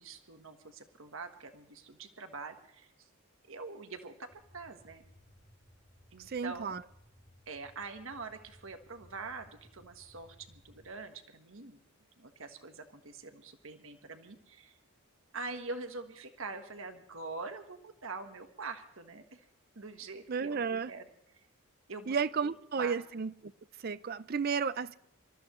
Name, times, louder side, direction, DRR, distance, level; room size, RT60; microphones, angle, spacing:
voice 1, 0.0-3.1 3.4-5.0 6.1-6.7 7.5-11.8 12.2-14.8 15.3-19.5 19.7-20.6 20.9-21.4 21.9-23.0, right 3 dB, 65° right, 1.5 m, -44 dB
sound 1, 4.3-11.1, equal, 10° left, 1.1 m, -62 dB
voice 2, 6.3-6.8 20.3-20.9 22.1-23.3 23.8-25.0, right 5 dB, 45° right, 0.4 m, -32 dB
26.5 x 14.0 x 3.1 m
head